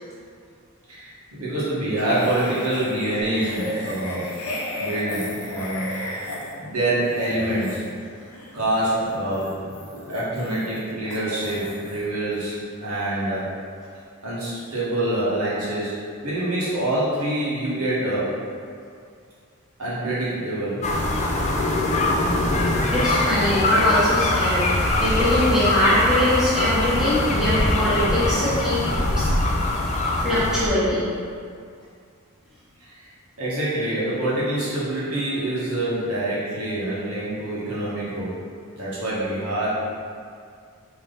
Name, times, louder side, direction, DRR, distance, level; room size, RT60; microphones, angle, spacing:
voice 1, 0.9-4.3 4.8-5.9 6.6-7.8 8.5-9.6 10.1-13.5 14.2-15.9 16.2-18.3 19.8-20.9 32.8-33.1 33.4-38.4 38.7-39.7, right 1 dB, 65° right, -9 dB, 1.4 m, -26 dB
sound 1, 2.0-12.1 12.4-12.6, left 1 dB, 70° left, 0.7 m, -35 dB
sound 2, 20.8-30.7, left 2 dB, 30° left, 0.4 m, -22 dB
voice 2, 22.9-28.8 29.2-29.4 30.2-31.1, left 1 dB, 5° right, -13 dB, 1.2 m, -22 dB
3.5 x 3.1 x 3.9 m, 2.3 s
head